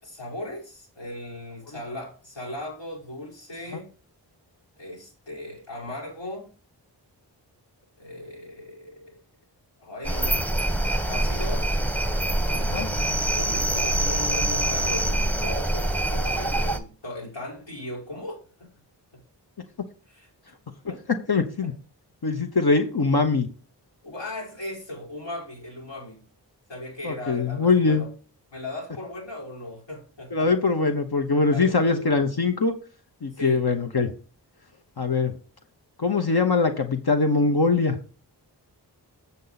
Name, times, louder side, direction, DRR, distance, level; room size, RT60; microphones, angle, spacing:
voice 1, 0.0-3.9 4.8-6.5 8.0-9.2 9.8-10.5 11.1-11.7 12.5-18.7 19.1-19.2 20.1-20.3 20.9-21.0 24.0-26.3 26.7-28.1 28.5-30.5 31.5-32.2 33.3-33.6, left 1 dB, 85° left, -3 dB, 5.2 m, -37 dB
sound 1, 10.0-16.8, right 1 dB, 5° left, 1.1 m, -25 dB
voice 2, 21.3-21.7 22.2-23.5 27.0-28.0 30.3-32.7 33.2-34.1 35.0-35.3 36.0-38.0, left 4 dB, 60° left, 6 dB, 1.2 m, -22 dB
8.3 x 7.0 x 4.1 m, 0.38 s
wide cardioid pair, 65°, 43 cm